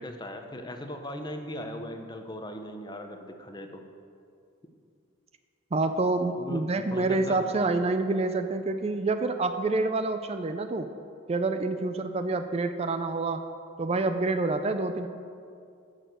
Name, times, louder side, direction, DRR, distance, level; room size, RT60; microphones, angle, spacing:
voice 1, 0.0-3.8 6.3-7.4, equal, 20° left, 5 dB, 0.8 m, -39 dB
voice 2, 5.7-10.9 11.3-13.5 13.8-15.1, right 3 dB, 30° right, 9 dB, 0.4 m, -27 dB
13.5 x 6.5 x 6.7 m, 2.4 s
head